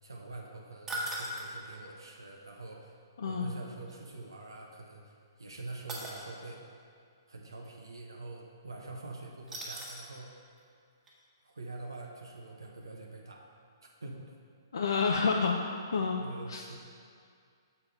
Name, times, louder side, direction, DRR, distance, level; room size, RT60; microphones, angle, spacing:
voice 1, 0.0-6.6 7.3-10.5 11.4-13.4 14.0-14.3 16.2-16.8, right 2 dB, 85° right, -1 dB, 0.8 m, -45 dB
sound 1, 0.9-1.5 3.9-4.0 5.9-6.2 9.5-10.1 10.6-10.7 11.1-11.2, right 1 dB, 15° right, 1.4 m, -38 dB
voice 2, 3.2-3.6 14.7-15.6 15.9-16.2 16.5-16.8, left 5 dB, 70° left, 1 dB, 0.5 m, -29 dB
6.9 x 4.6 x 5.3 m, 2.2 s
figure-of-eight pair, 130°, 2 cm